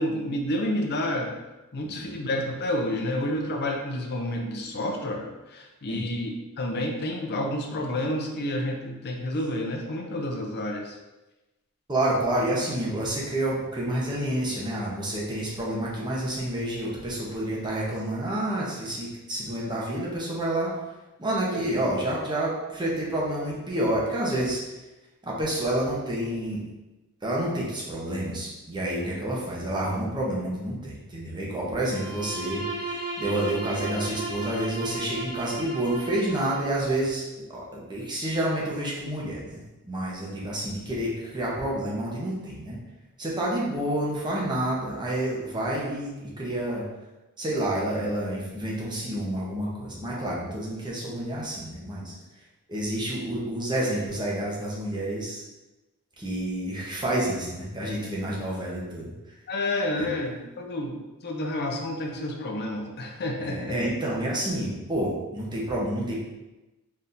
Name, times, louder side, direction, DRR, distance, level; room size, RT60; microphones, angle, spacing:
voice 1, 0.0-1.4 1.7-6.3 6.6-11.0 59.5-61.0 61.2-63.8, left 1 dB, 50° left, 2 dB, 0.6 m, -29 dB
voice 2, 11.9-20.7 21.2-24.6 25.2-26.6 27.2-37.2 37.5-42.8 43.2-46.8 47.4-52.1 52.7-55.4 56.2-59.1 63.4-66.2, right 1 dB, 20° right, -5 dB, 0.9 m, -29 dB
Bowed string instrument, 31.8-36.8, right 2 dB, 75° right, 1.3 m, -35 dB
4.2 x 3.6 x 2.6 m, 1.0 s
head